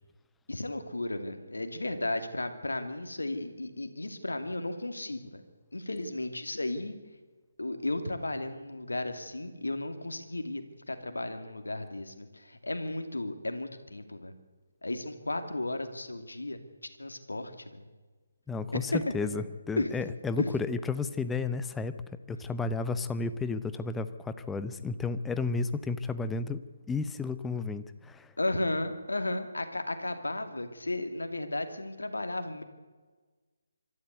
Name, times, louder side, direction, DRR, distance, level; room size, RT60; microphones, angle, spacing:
voice 1, 0.5-5.4 5.7-7.0 7.6-14.3 14.8-16.6 17.0-17.9 18.7-19.0 19.3-19.4 19.8-20.1 20.4-20.5 28.4-32.6, left 2 dB, 75° left, 8 dB, 2.4 m, -34 dB
voice 2, 18.5-21.9 22.3-26.6 26.9-28.3, left 4 dB, 5° left, 12 dB, 0.7 m, -32 dB
25.0 x 13.0 x 8.2 m, 1.4 s
figure-of-eight pair, 145°, 0 cm